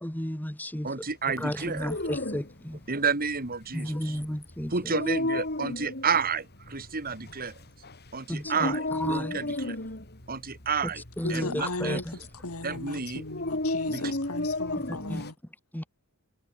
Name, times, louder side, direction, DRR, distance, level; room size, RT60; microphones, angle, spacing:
voice 1, 0.0-1.1 1.4-2.8 3.7-5.0 8.3-9.6 10.8-12.2 14.9-15.2 15.7-15.8, left 1 dB, 10° left, 1.3 m, -34 dB
voice 2, 0.8-1.9 2.9-4.2 4.7-7.5 8.1-9.8 10.3-11.0 11.3-12.0 12.6-13.2 13.9-14.0, right 5 dB, 40° right, 2.3 m, -30 dB
Dog, 1.6-15.3, left 2 dB, 50° left, 4.5 m, -34 dB
voice 3, 11.2-12.0 12.4-15.3, left 2 dB, 75° left, 3.2 m, -36 dB
head